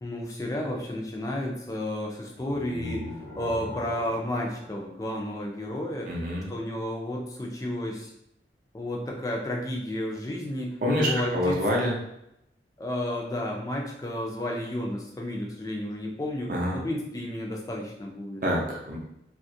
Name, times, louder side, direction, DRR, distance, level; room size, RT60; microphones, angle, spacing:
voice 1, 0.0-6.1 6.5-8.1 8.7-11.6 12.8-18.4, left 1 dB, 20° left, 0 dB, 0.3 m, -32 dB
sound 1, 2.4-5.5, left 2 dB, 80° left, 0.7 m, -40 dB
voice 2, 6.1-6.5 10.8-12.0 16.5-16.8 18.4-19.0, equal, 50° right, -2 dB, 0.5 m, -26 dB
2.3 x 2.1 x 2.6 m, 0.81 s
head